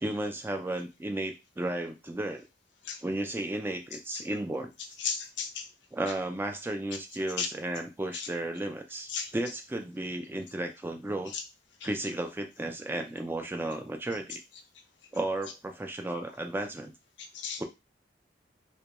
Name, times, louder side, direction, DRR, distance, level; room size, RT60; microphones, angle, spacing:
voice 1, 0.0-2.4 3.0-4.7 5.9-11.3 11.8-14.4 15.1-16.9 17.6-17.7, right 1 dB, 10° right, 4 dB, 0.3 m, -34 dB
voice 2, 5.0-5.7 6.1-6.2 7.4-7.5 8.1-8.3 9.1-9.3 11.3-11.4 11.8-11.9 17.2-17.6, left 6 dB, 80° left, 6 dB, 0.5 m, -34 dB
2.2 x 2.1 x 2.9 m, 0.24 s
head